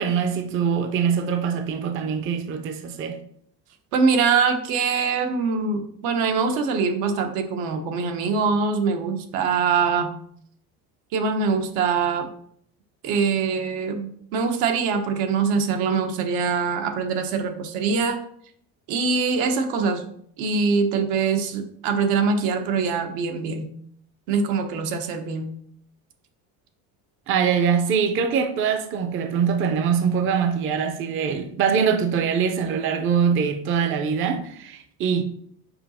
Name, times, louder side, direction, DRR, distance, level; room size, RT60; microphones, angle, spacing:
voice 1, 0.0-3.2 27.3-35.2, right 7 dB, 35° right, 0.6 m, -23 dB
voice 2, 3.9-10.1 11.1-12.3 13.0-18.2 18.9-20.0 20.4-23.7 24.3-25.5, right 5 dB, 80° right, 1.1 m, -23 dB
5.4 x 4.7 x 4.2 m
cardioid pair, 160°, 36 cm